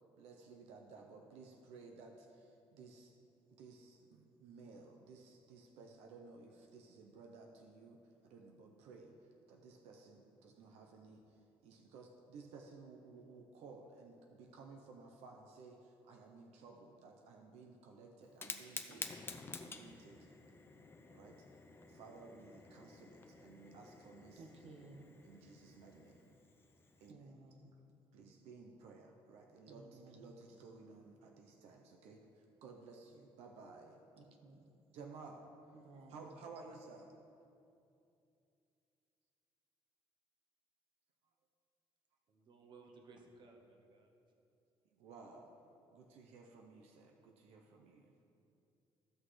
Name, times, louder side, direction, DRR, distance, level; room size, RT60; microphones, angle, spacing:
voice 1, 0.2-3.1 3.5-9.1 9.5-19.3 19.6-20.4 21.1-21.5 21.8-24.5 25.2-26.3 27.0-27.4 28.1-34.0 34.9-35.5 36.1-37.1 44.9-45.6 45.9-48.2, right 4 dB, 90° right, 1 dB, 0.7 m, -56 dB
Fire, 18.2-27.1, left 4 dB, 20° left, 0.6 m, -51 dB
voice 2, 24.4-25.1 27.1-27.8 29.7-30.3 34.2-34.7 35.7-36.2 36.4-36.5, right 3 dB, 65° right, 4 dB, 1.0 m, -57 dB
voice 3, 42.3-44.1, right 3 dB, 45° right, 2 dB, 1.1 m, -59 dB
14.5 x 6.1 x 3.2 m, 2.7 s
cardioid pair, 135°, 11 cm